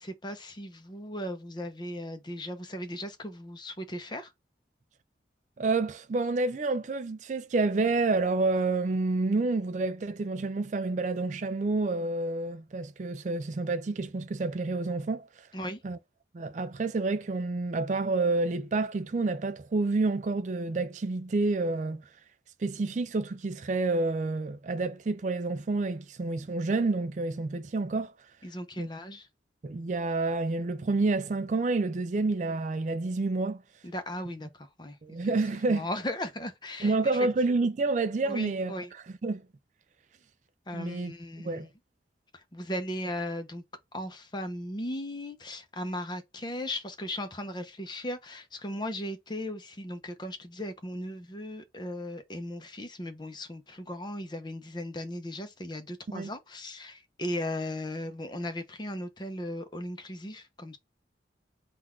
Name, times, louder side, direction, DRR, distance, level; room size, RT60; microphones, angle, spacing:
voice 1, 0.0-4.3 15.5-15.8 28.4-29.3 33.8-35.2 35.7-37.0 38.2-38.9 40.7-41.7 42.3-43.6 43.9-60.8, left 1 dB, 25° left, 0.7 m, -37 dB
voice 2, 5.6-15.5 15.8-16.0 16.3-22.0 22.6-28.1 28.8-28.9 29.6-33.6 35.0-35.9 36.8-39.4 40.7-41.1 41.4-41.7 56.1-56.3, right 3 dB, 40° right, 0.4 m, -29 dB
3.9 x 2.4 x 4.3 m
head